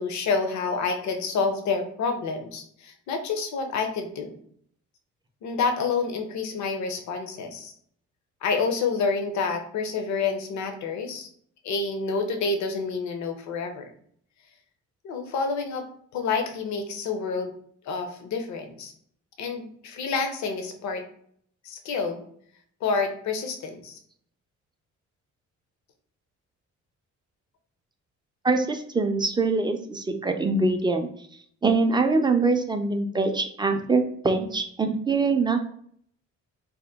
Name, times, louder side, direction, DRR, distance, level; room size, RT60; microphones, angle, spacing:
voice 1, 0.0-4.3 5.4-7.7 8.4-11.3 11.6-13.8 15.0-15.8 16.1-17.5 17.8-18.9 19.4-21.0 21.6-22.2 22.8-24.0, left 4 dB, 70° left, 5 dB, 0.6 m, -28 dB
voice 2, 28.4-31.1 31.6-35.7, right 3 dB, 15° right, 6 dB, 0.3 m, -24 dB
2.8 x 2.1 x 3.4 m, 0.63 s
cardioid pair, 90°, 30 cm